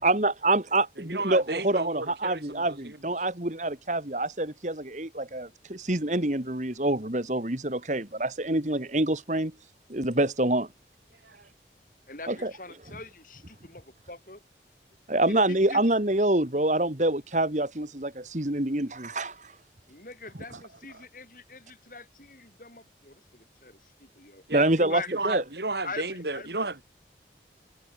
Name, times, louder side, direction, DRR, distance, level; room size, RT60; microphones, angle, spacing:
voice 1, 0.0-9.5 9.9-10.7 12.3-12.5 12.9-13.0 15.1-19.5 20.5-20.6 24.5-25.4, right 2 dB, 45° right, 2.2 m, -26 dB
voice 2, 1.0-3.0 20.3-21.0 24.5-26.8, right 2 dB, 70° right, 5.4 m, -34 dB
voice 3, 12.1-14.4 15.5-15.8 19.9-23.8 24.2-24.4 24.8-25.1 25.8-26.0 26.3-26.5, left 3 dB, 50° left, 6.3 m, -43 dB
head